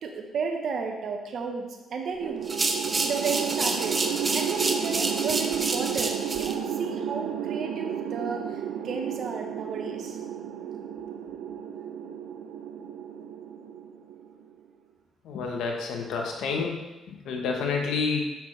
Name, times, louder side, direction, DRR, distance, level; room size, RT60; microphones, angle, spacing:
voice 1, 0.0-2.4 2.9-10.2, right 5 dB, 65° right, 3 dB, 1.1 m, -33 dB
sound 1, 2.2-14.5, right 9 dB, 90° right, 0.4 m, -32 dB
sound 2, 2.4-6.5, right 2 dB, 25° right, 0.7 m, -29 dB
voice 2, 15.2-16.8 17.1-18.2, left 5 dB, 85° left, 2 dB, 1.0 m, -29 dB
7.2 x 5.8 x 3.3 m, 1.1 s
cardioid pair, 90°, 0 cm